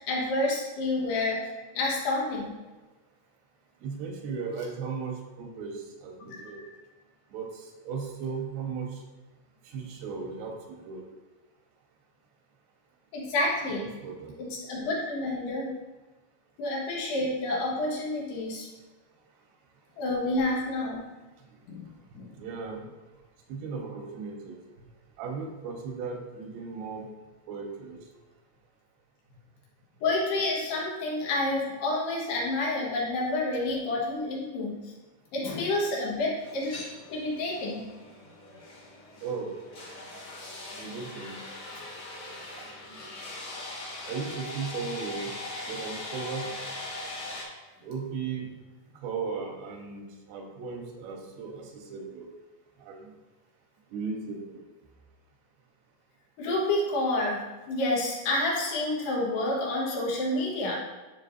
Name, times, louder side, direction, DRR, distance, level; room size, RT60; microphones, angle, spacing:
voice 1, 0.0-1.5 1.7-2.6 6.2-6.7 13.1-13.9 14.4-15.7 16.6-18.7 20.0-21.1 21.7-21.9 22.2-22.3 30.0-34.9 35.3-36.8 37.1-37.9 56.4-60.8, left 2 dB, 85° left, -3 dB, 3.7 m, -29 dB
voice 2, 3.8-6.6 7.3-9.0 9.7-11.0 13.7-14.3 22.4-22.8 23.5-24.6 25.2-27.1 27.5-28.0 39.2-39.5 40.8-41.4 42.6-42.7 44.1-45.3 45.7-46.5 47.8-48.5 49.0-52.3 52.8-53.1 53.9-54.6, right 5 dB, 85° right, 2 dB, 3.2 m, -36 dB
sound 1, 36.4-47.4, left 2 dB, 40° left, 2.2 m, -41 dB
11.5 x 5.6 x 2.8 m, 1.2 s
omnidirectional pair, 4.6 m